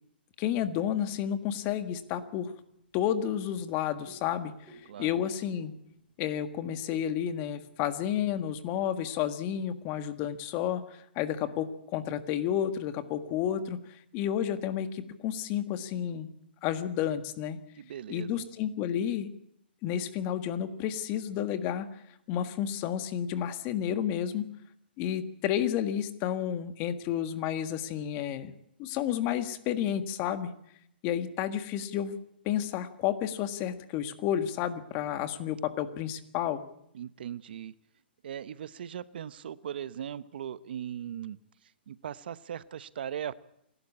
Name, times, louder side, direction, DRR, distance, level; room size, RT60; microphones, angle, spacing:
voice 1, 0.4-2.5 2.9-5.7 6.2-16.3 16.6-17.6 18.1-19.3 19.8-21.9 22.3-24.5 25.0-28.5 28.8-30.5 31.0-32.2 32.4-36.6, left 10 dB, 30° left, 11 dB, 1.6 m, -31 dB
sound 1, 1.5-9.2, right 2 dB, 10° right, 6.2 m, -59 dB
voice 2, 4.9-5.2 17.8-18.4 36.9-37.7 38.2-43.3, right 9 dB, 65° right, 16 dB, 0.9 m, -39 dB
27.0 x 12.5 x 8.6 m, 0.75 s
hypercardioid pair, 145°, 6 cm